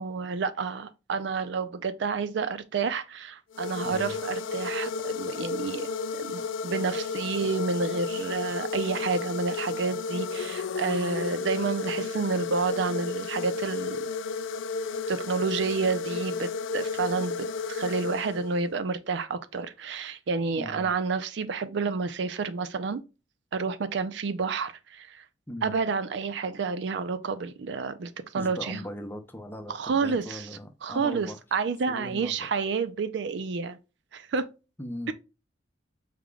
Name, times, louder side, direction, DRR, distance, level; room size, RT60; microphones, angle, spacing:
voice 1, 0.0-5.9 6.1-14.0 15.1-23.0 23.5-25.2 25.6-28.8 29.7-30.5 30.8-33.8 34.1-34.5 35.1-35.2, right 4 dB, 65° right, 0.4 m, -30 dB
sound 1, 3.5-18.7, left 4 dB, 85° left, 0.3 m, -33 dB
voice 2, 3.8-4.2 20.6-20.9 25.5-25.8 28.4-31.4 31.9-32.4 34.8-35.1, left 1 dB, 10° left, 0.6 m, -39 dB
4.8 x 3.5 x 2.2 m
head